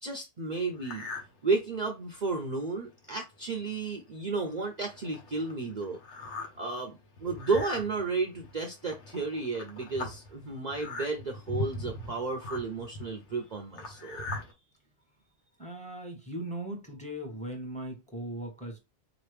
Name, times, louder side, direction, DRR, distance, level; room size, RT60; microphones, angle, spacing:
voice 1, 0.0-1.1 1.4-14.3, right 3 dB, 45° right, 0.7 m, -33 dB
sound 1, 0.8-1.3 1.8-1.9 2.5-2.6 2.9-3.1 3.8-3.9 4.3-14.5, left 2 dB, 85° left, 1.5 m, -40 dB
voice 2, 15.6-18.8, right 1 dB, 5° left, 1.2 m, -38 dB
4.2 x 2.9 x 3.3 m
omnidirectional pair, 1.2 m